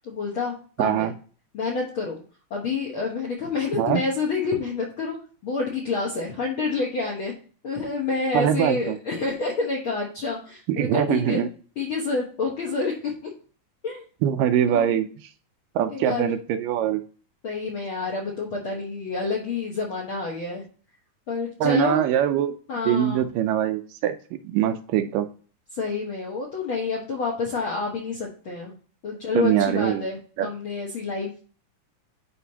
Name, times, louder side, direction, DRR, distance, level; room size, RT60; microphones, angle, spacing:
voice 1, 0.0-1.1 1.5-2.2 2.5-5.2 5.4-7.3 7.6-11.4 11.8-13.3 13.8-14.0 14.7-14.9 15.9-16.3 17.4-20.6 21.3-22.0 22.7-23.3 25.7-28.7 29.0-31.4, left 4 dB, 65° left, -2 dB, 1.3 m, -28 dB
voice 2, 0.8-1.1 3.7-4.0 8.3-9.0 10.7-11.5 14.2-15.1 15.8-17.0 21.6-22.5 22.9-24.2 24.4-25.3 29.3-30.0 30.4-30.5, right 10 dB, 80° right, 9 dB, 2.2 m, -22 dB
10.0 x 4.7 x 2.8 m, 0.40 s
omnidirectional pair, 3.9 m